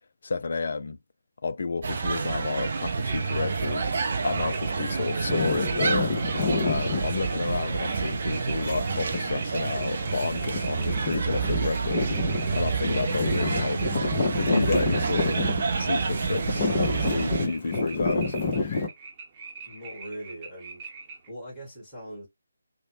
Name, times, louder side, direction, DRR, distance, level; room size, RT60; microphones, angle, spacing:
voice 1, 0.2-1.0 1.4-3.9 4.2-13.8 14.4-15.4 15.8-18.4, left 4 dB, 50° left, 0.3 m, -31 dB
sound 1, 1.8-17.5, right 5 dB, 40° right, 0.5 m, -28 dB
sound 2, 2.7-21.3, right 4 dB, 15° right, 0.9 m, -44 dB
sound 3, 5.3-18.9, left 3 dB, 30° left, 0.9 m, -30 dB
voice 2, 6.8-7.2 19.6-20.9 21.3-22.3, right 1 dB, 5° left, 1.3 m, -41 dB
3.1 x 2.1 x 3.0 m
figure-of-eight pair, 150°, 0 cm